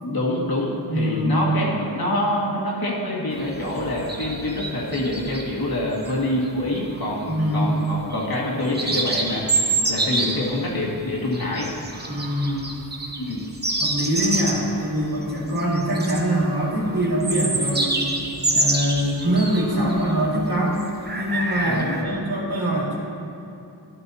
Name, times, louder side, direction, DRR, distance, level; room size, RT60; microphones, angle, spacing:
voice 1, 0.0-11.7 13.2-13.4 21.6-22.2, left 1 dB, 60° left, -5 dB, 1.9 m, -26 dB
voice 2, 0.9-1.5 7.3-7.7 12.1-12.7 13.8-18.2 18.5-20.8 21.2-23.0, equal, 60° right, -5 dB, 2.2 m, -23 dB
sound 1, 3.3-5.5 5.9-6.5 6.8-7.4 8.1-8.4 8.6-10.6 11.1-20.4 20.6-22.0, right 2 dB, 25° right, 0.9 m, -27 dB
12.5 x 10.5 x 2.8 m, 2.7 s
wide cardioid pair, 85°, 41 cm